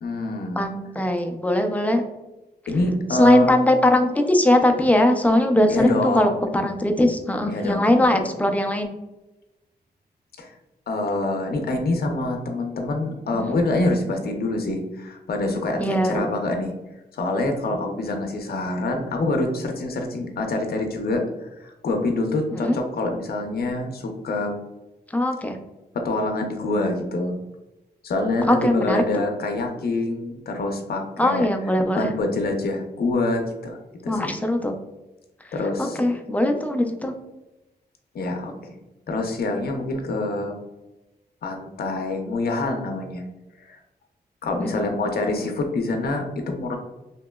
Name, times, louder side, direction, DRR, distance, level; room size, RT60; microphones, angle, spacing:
voice 1, 0.0-0.6 2.7-3.5 5.7-6.3 7.5-7.9 10.4-10.5 10.9-16.7 17.1-21.2 21.6-22.7 23.0-24.5 25.9-27.4 28.0-31.5 32.0-34.3 35.5-35.9 38.1-38.7 39.1-40.5 41.4-43.2 43.6-43.8 44.4-46.8, left 2 dB, 60° left, 3 dB, 0.5 m, -26 dB
voice 2, 0.6-2.0 3.1-8.9 13.3-13.6 15.8-16.2 22.5-22.8 25.1-25.6 28.4-29.2 31.2-32.1 34.1-34.8 35.4-37.1 44.6-44.9, left 1 dB, 10° left, 4 dB, 0.3 m, -21 dB
2.9 x 2.8 x 2.2 m, 1.0 s
wide cardioid pair, 115°, 18 cm